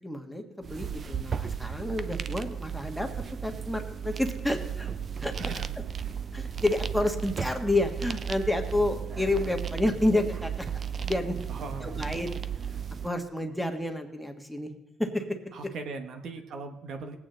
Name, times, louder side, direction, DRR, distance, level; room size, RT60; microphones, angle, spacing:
voice 1, 0.0-3.1 3.4-4.9 5.2-5.3 6.3-10.7 11.0-11.3 11.8-12.4 13.0-14.7 15.0-15.2, left 1 dB, ahead, 4 dB, 1.5 m, -29 dB
sound 1, 0.6-13.1, right 7 dB, 45° right, 0.6 m, -35 dB
voice 2, 11.5-12.1 15.5-17.1, right 4 dB, 65° right, 6 dB, 1.3 m, -39 dB
19.0 x 8.7 x 3.9 m, 0.92 s
cardioid pair, 95°, 0 cm